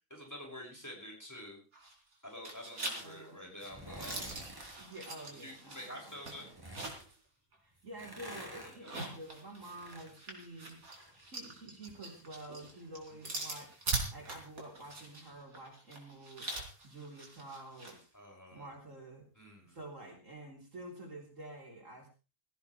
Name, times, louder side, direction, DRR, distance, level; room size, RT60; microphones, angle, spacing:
voice 1, 0.1-1.6 2.2-4.6 5.4-6.5 8.8-8.9 18.1-18.7 19.3-19.8, left 1 dB, 10° left, 0 dB, 6.1 m, -48 dB
sound 1, 1.7-2.1 2.4-7.2 7.5-7.6 8.7-18.0, right 2 dB, 80° right, 4.3 m, -42 dB
voice 2, 3.0-3.6 4.8-6.8 7.6-10.8 11.2-13.8 14.1-16.5 16.8-18.1 18.5-19.3 19.6-22.1, right 2 dB, 60° right, 0 dB, 4.2 m, -49 dB
sound 2, 3.6-4.8 6.0-7.0 7.8-11.3 11.6-15.0 15.3-15.4, equal, 15° right, 4.9 m, -51 dB
17.0 x 16.5 x 3.3 m, 0.32 s
omnidirectional pair, 1.5 m